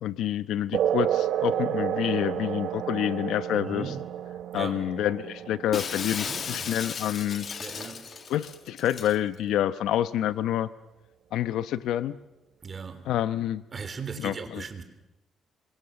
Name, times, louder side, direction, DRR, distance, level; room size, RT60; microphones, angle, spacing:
voice 1, 0.0-3.9 4.5-7.5 8.3-10.7 11.3-12.1 13.1-13.6 14.2-14.6, left 11 dB, 90° left, 0.9 m, -28 dB
sound 1, 0.7-7.7, right 10 dB, 80° right, 1.1 m, -31 dB
voice 2, 3.5-4.1 4.5-4.9 6.2-6.7 7.6-8.1 12.6-13.1 13.7-14.8, right 5 dB, 35° right, 3.4 m, -38 dB
Shatter, 5.7-9.2, left 6 dB, 45° left, 1.4 m, -35 dB
26.5 x 23.5 x 7.1 m
cardioid pair, 115°, 0 cm